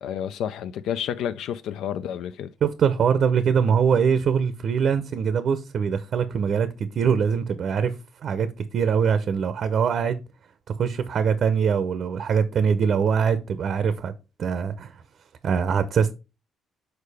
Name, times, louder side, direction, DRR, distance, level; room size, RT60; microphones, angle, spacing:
voice 1, 0.0-2.5, left 9 dB, 80° left, 0.3 m, -30 dB
voice 2, 2.6-7.9 8.2-10.2 10.8-14.1 14.4-15.0 15.4-16.1, right 6 dB, 50° right, 0.6 m, -23 dB
6.6 x 4.6 x 3.4 m
cardioid pair, 145°, 0 cm